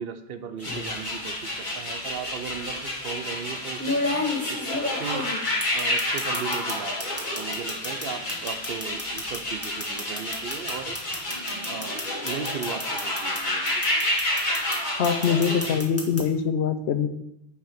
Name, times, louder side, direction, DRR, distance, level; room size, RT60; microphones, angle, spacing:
voice 1, 0.0-4.0 4.5-5.3 5.7-11.0 11.7-13.7, right 7 dB, 65° right, 8 dB, 0.8 m, -37 dB
sound 1, 0.6-15.8, left 1 dB, 50° left, 1.6 m, -30 dB
sound 2, 0.6-0.9 2.1-2.2 3.8-6.7 7.0-13.4 13.7-14.8 15.0-16.2, left 2 dB, 15° left, 1.3 m, -31 dB
voice 2, 15.0-17.1, left 7 dB, 80° left, 10 dB, 0.9 m, -23 dB
9.2 x 3.4 x 4.9 m, 0.83 s
omnidirectional pair, 1.1 m